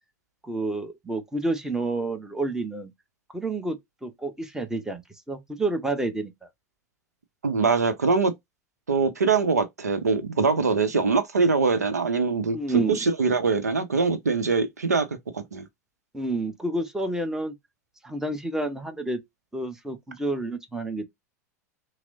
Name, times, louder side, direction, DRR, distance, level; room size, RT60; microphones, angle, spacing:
voice 1, 0.4-2.9 3.3-5.0 5.3-6.3 12.5-13.0 16.1-17.5 18.0-19.2 19.5-21.1, right 2 dB, 5° right, 0.8 m, -29 dB
voice 2, 7.4-8.3 8.9-12.6 12.9-15.1 15.3-15.6, right 4 dB, 80° right, 0.6 m, -23 dB
5.8 x 2.0 x 2.5 m
figure-of-eight pair, 85°, 9 cm